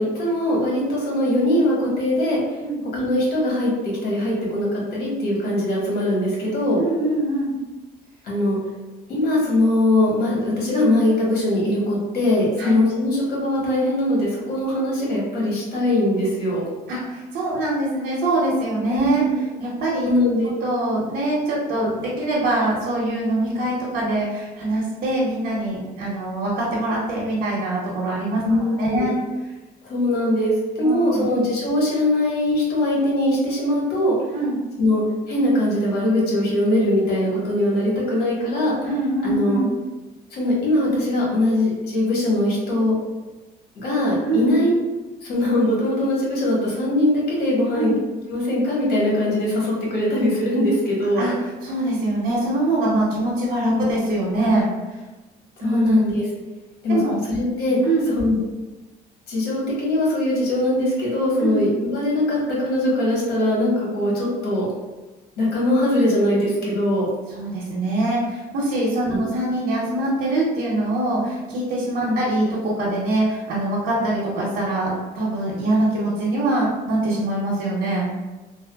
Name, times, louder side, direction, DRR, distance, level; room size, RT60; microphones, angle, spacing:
voice 1, 0.0-2.4 2.9-3.7 4.0-6.8 8.2-8.6 9.1-16.6 18.9-19.3 20.0-20.5 23.5-23.6 28.4-29.1 29.9-34.1 34.8-38.7 39.2-39.6 40.3-42.9 43.7-44.7 45.2-47.9 48.3-51.3 53.6-53.9 55.6-56.2 56.8-57.0 57.3-57.8 58.1-58.4 59.3-64.7 65.4-67.1 69.1-69.2 72.0-72.2, left 1 dB, 70° left, -5 dB, 1.2 m, -21 dB
voice 2, 6.8-7.5 12.6-12.8 16.9-19.2 19.6-20.1 20.6-29.1 30.8-31.3 34.3-34.6 38.8-39.7 44.3-44.6 47.7-48.0 51.2-54.7 55.6-55.9 56.9-57.2 57.8-58.1 61.4-61.7 67.4-78.1, right 2 dB, 75° right, -6 dB, 0.8 m, -23 dB
3.3 x 2.1 x 2.2 m, 1.1 s
cardioid pair, 110°, 17 cm